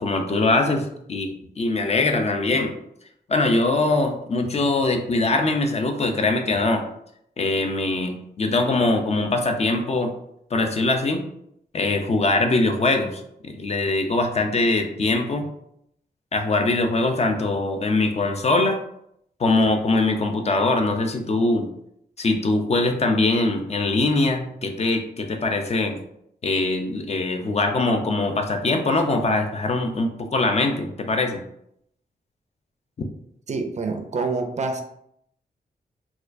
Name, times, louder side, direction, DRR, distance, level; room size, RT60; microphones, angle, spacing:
voice 1, 0.0-2.8 3.3-6.8 7.4-10.1 10.5-11.3 11.7-15.5 16.3-18.8 19.4-21.7 22.2-26.0 26.4-31.4, left 2 dB, 40° left, 4 dB, 0.4 m, -22 dB
voice 2, 33.5-34.8, right 4 dB, 45° right, 6 dB, 0.4 m, -26 dB
4.3 x 2.3 x 2.5 m, 0.74 s
wide cardioid pair, 145°, 17 cm